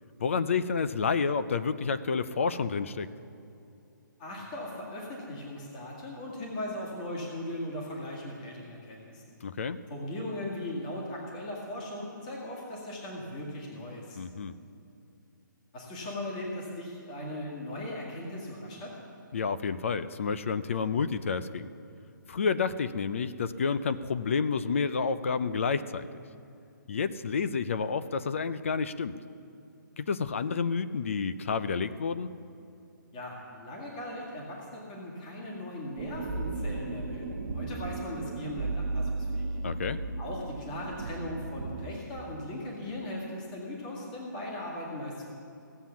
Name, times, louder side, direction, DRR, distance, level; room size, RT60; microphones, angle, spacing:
voice 1, 0.2-3.1 9.4-9.8 14.2-14.5 19.3-21.7 22.3-26.1 26.9-29.2 30.0-32.3 39.6-40.0, left 5 dB, 40° left, 13 dB, 0.4 m, -29 dB
voice 2, 4.2-9.2 9.9-14.2 15.7-18.9 33.1-39.5 40.2-45.3, left 1 dB, 20° left, -3 dB, 2.0 m, -38 dB
sound 1, 36.0-41.9, right 3 dB, 30° right, 0.8 m, -35 dB
16.0 x 7.6 x 7.1 m, 2.6 s
hypercardioid pair, 175°, 11 cm